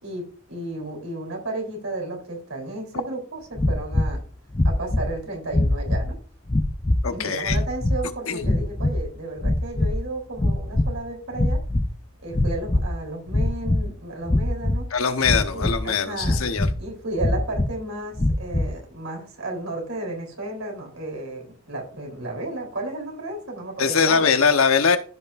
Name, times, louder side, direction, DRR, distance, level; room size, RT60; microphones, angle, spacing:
voice 1, 0.0-4.2 4.6-6.2 7.1-11.6 12.2-14.9 15.5-16.4 16.8-24.3, right 2 dB, 85° right, 1 dB, 3.6 m, -33 dB
sound 1, 3.6-4.2 4.5-5.1 5.5-6.1 6.5-7.1 7.4-8.0 8.4-9.1 9.4-10.0 10.3-11.0 11.3-11.9 12.3-12.9 13.3-13.9 14.3-14.8 15.2-15.9 16.2-16.8 17.2-17.7 18.2-18.7, left 1 dB, 25° left, 0.6 m, -23 dB
voice 2, 7.0-7.6 8.3-8.4 14.9-16.7 23.8-25.0, left 6 dB, 90° left, 8 dB, 1.0 m, -21 dB
14.5 x 5.6 x 2.5 m, 0.40 s
head